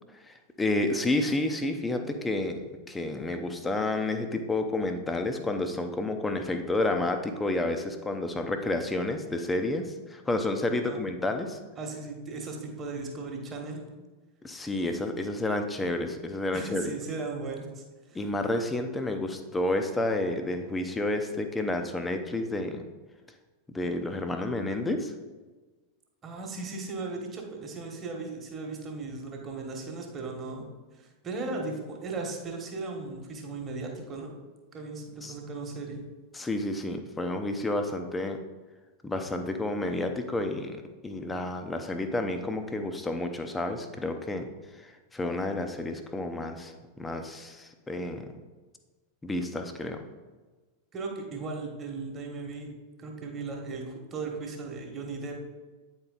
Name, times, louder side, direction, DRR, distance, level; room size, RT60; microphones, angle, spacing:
voice 1, 0.3-11.6 14.4-16.9 18.1-22.8 23.7-25.1 35.2-35.3 36.3-38.4 39.0-40.8 41.0-44.5 44.8-48.3 49.2-50.0, left 2 dB, 10° left, 6 dB, 0.7 m, -30 dB
voice 2, 11.8-13.8 16.5-18.2 26.2-30.7 31.0-34.3 34.7-36.0 50.9-52.7 53.0-55.4, right 3 dB, 25° right, 1 dB, 1.4 m, -37 dB
8.7 x 4.4 x 3.9 m, 1.3 s
figure-of-eight pair, 90°, 0 cm